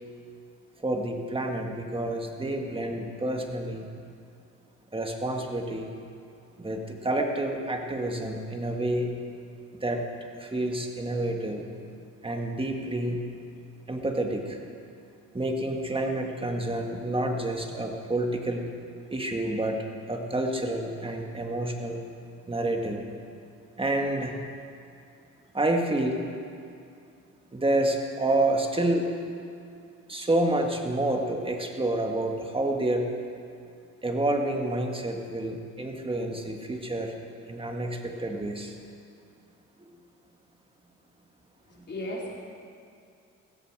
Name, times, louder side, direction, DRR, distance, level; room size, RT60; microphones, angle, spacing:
voice 1, 0.8-3.9 4.9-5.9 6.6-9.1 9.7-10.0 10.4-11.6 12.2-13.2 13.9-14.6 15.3-18.7 19.1-22.0 22.5-23.0 23.8-24.4 25.5-26.2 27.5-29.1 30.1-33.1 34.0-37.1 37.5-38.8 39.8-39.9, right 1 dB, 20° right, 2 dB, 2.0 m, -29 dB
voice 2, 41.7-42.4, left 1 dB, 35° left, -3 dB, 3.9 m, -35 dB
16.0 x 14.5 x 5.0 m, 2.4 s
cardioid pair, 90°, 30 cm